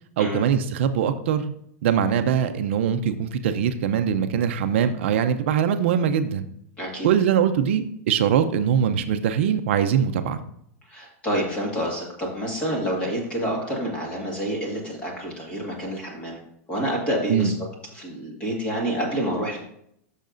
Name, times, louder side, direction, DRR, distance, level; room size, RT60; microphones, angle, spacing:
voice 1, 0.2-1.5 1.8-6.5 7.0-10.4 17.3-17.5, right 8 dB, 50° right, 8 dB, 0.6 m, -22 dB
voice 2, 6.8-7.1 10.9-16.4 16.7-17.5 17.9-19.6, equal, 15° left, -2 dB, 1.8 m, -28 dB
10.5 x 6.4 x 2.6 m, 0.70 s
supercardioid pair, 175°, 8 cm